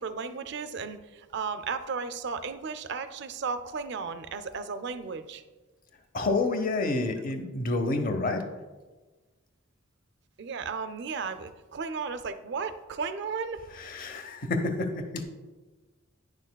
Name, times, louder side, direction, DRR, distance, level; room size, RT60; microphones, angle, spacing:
voice 1, 0.0-5.4 10.4-13.6, right 5 dB, 55° right, 11 dB, 0.4 m, -34 dB
voice 2, 6.1-8.4 13.7-15.2, left 2 dB, 45° left, 7 dB, 0.7 m, -29 dB
9.6 x 6.4 x 2.2 m, 1.2 s
head